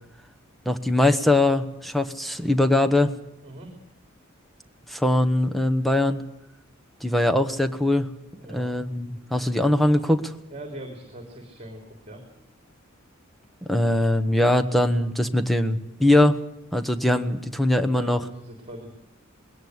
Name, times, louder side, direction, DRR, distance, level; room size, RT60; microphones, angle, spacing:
voice 1, 0.6-3.1 4.9-6.2 7.0-8.1 8.5-10.3 13.7-16.4 16.7-18.2, left 1 dB, ahead, 7 dB, 1.1 m, -21 dB
voice 2, 3.4-3.7 8.3-8.7 10.5-12.2 17.9-18.9, right 1 dB, 30° right, 4 dB, 3.3 m, -41 dB
20.5 x 18.0 x 8.0 m, 0.85 s
head